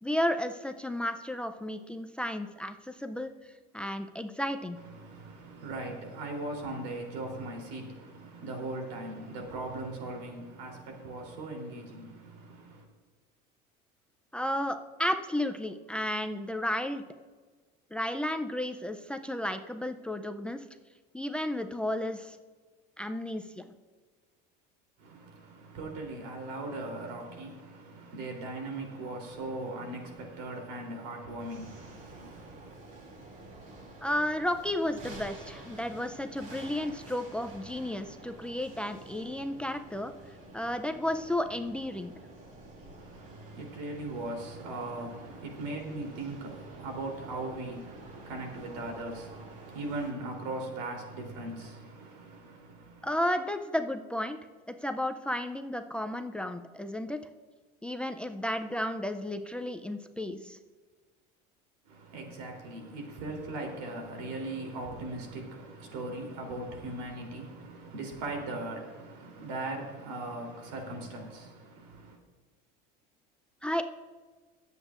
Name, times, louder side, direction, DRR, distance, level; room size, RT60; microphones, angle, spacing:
voice 1, 0.0-4.8 14.3-17.0 17.9-20.6 21.1-22.4 23.0-23.7 34.0-40.1 40.5-42.1 53.0-54.4 54.7-57.2 57.8-60.6 73.6-73.8, left 1 dB, 5° left, 8 dB, 0.4 m, -33 dB
voice 2, 4.8-12.8 25.0-32.8 43.0-53.1 61.8-72.2, right 2 dB, 85° right, 2 dB, 3.3 m, -39 dB
sound 1, 31.4-50.1, right 2 dB, 40° right, 2.6 m, -49 dB
24.0 x 8.2 x 2.5 m, 1.4 s
cardioid pair, 135°, 20 cm